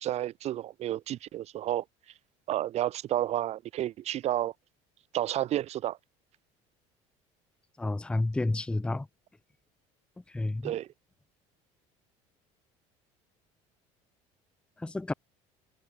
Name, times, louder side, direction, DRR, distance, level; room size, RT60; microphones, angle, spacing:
voice 1, 0.0-1.8 2.5-4.5 5.1-6.0 10.6-10.9, right 13 dB, 45° right, 0.5 m, -31 dB
voice 2, 7.8-9.1 10.3-10.7 14.8-15.1, left 2 dB, 5° left, 0.5 m, -30 dB
supercardioid pair, 105°, 15 cm